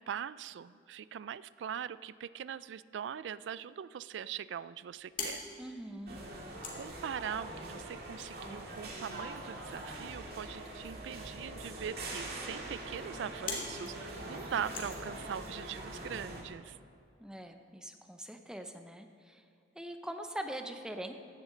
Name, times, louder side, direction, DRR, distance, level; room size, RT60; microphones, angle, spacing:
voice 1, 0.0-5.4 6.7-16.8, right 8 dB, 75° right, 18 dB, 0.3 m, -41 dB
sound 1, 4.8-15.7, left 3 dB, 45° left, 2.4 m, -47 dB
voice 2, 5.6-6.2 17.2-19.4 19.8-21.1, right 1 dB, 5° right, 6 dB, 0.6 m, -42 dB
sound 2, 6.1-16.4, right 1 dB, 60° right, 2.0 m, -43 dB
15.5 x 10.5 x 3.9 m, 2.5 s
head